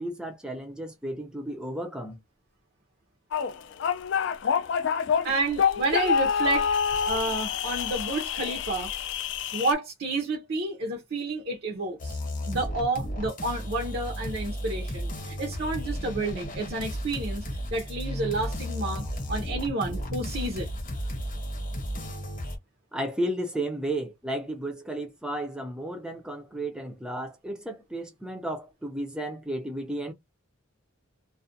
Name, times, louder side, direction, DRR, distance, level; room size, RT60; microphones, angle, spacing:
voice 1, 0.0-2.2 22.9-30.1, right 1 dB, 5° right, 0.4 m, -33 dB
sound 1, 3.3-9.7, left 7 dB, 55° left, 0.3 m, -27 dB
voice 2, 5.2-8.9 9.5-12.2 12.5-17.4 17.7-20.7, right 2 dB, 50° right, 0.6 m, -30 dB
sound 2, 12.0-22.6, equal, 40° left, 0.9 m, -34 dB
2.3 x 2.1 x 2.6 m
head